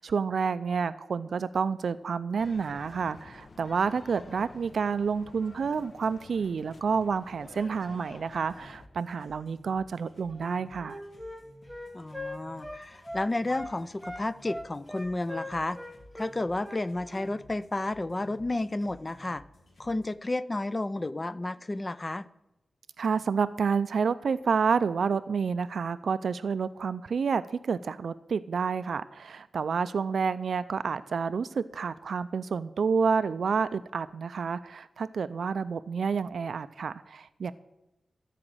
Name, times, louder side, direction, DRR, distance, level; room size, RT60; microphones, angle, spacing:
voice 1, 0.0-11.0 23.0-37.5, right 5 dB, 85° right, 13 dB, 0.4 m, -29 dB
sound 1, 2.4-8.9, left 3 dB, 55° left, 0.8 m, -50 dB
sound 2, 8.4-20.1, left 1 dB, 75° left, 3.2 m, -55 dB
Wind instrument woodwind instrument, 10.3-13.7 14.0-17.3, left 1 dB, ahead, 1.7 m, -40 dB
voice 2, 11.9-15.8 16.1-19.4 19.8-22.3, left 2 dB, 30° left, 15 dB, 0.5 m, -32 dB
14.0 x 5.0 x 8.9 m, 0.95 s
wide cardioid pair, 85°, 0 cm